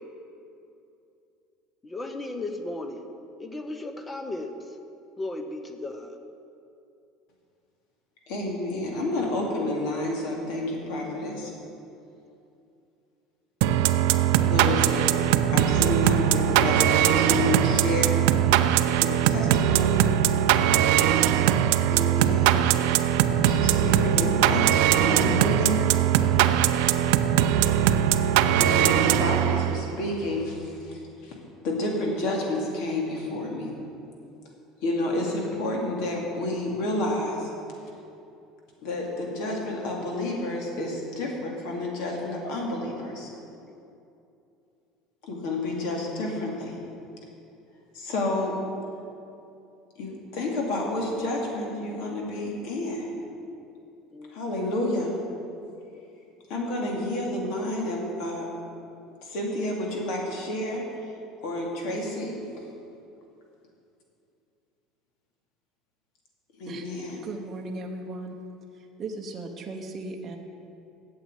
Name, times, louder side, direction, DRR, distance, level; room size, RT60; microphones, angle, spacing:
voice 1, 1.8-3.0 3.4-4.5 5.2-6.2 54.1-54.3, left 2 dB, 10° left, 7 dB, 0.7 m, -35 dB
voice 2, 8.3-11.5 14.4-15.1 15.5-18.1 18.9-20.0 21.9-22.6 23.3-25.8 28.6-31.4 31.6-33.7 34.8-37.5 38.8-43.3 45.2-46.7 47.9-48.5 50.0-53.1 54.3-55.1 56.5-58.5 59.2-60.8 61.4-62.3 66.6-67.2, left 1 dB, 60° left, -1 dB, 2.4 m, -30 dB
sound 1, 13.6-29.9, right 11 dB, 75° right, 0.5 m, -21 dB
voice 3, 67.2-68.4 69.0-70.4, right 2 dB, 25° right, 1 dB, 0.8 m, -36 dB
8.4 x 7.7 x 9.0 m, 2.7 s
cardioid pair, 175°, 0 cm